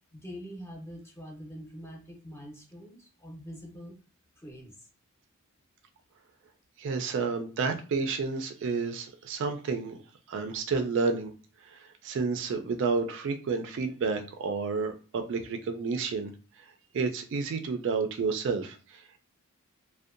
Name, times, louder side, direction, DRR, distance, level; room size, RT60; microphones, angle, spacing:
voice 1, 0.1-4.0 4.4-4.9, equal, 10° left, 0 dB, 0.6 m, -44 dB
voice 2, 6.8-10.0 10.3-11.3 11.6-16.3 16.9-19.2, right 4 dB, 55° right, 6 dB, 0.3 m, -30 dB
2.6 x 2.1 x 2.4 m, 0.36 s
head